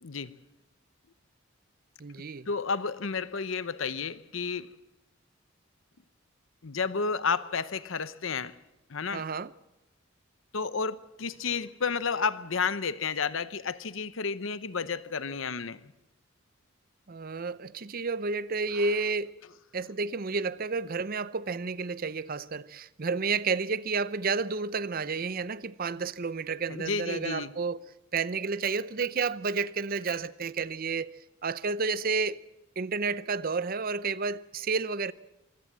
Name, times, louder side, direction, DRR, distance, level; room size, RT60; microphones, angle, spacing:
voice 1, 0.0-0.4 2.5-4.7 6.6-8.5 8.9-9.3 10.5-15.8 26.7-27.5, left 5 dB, 70° left, 0.8 m, -31 dB
voice 2, 2.0-2.5 9.1-9.5 17.1-19.3 19.7-27.8 28.1-32.4 32.8-35.1, right 4 dB, 45° right, 0.6 m, -31 dB
25.0 x 16.5 x 7.5 m
head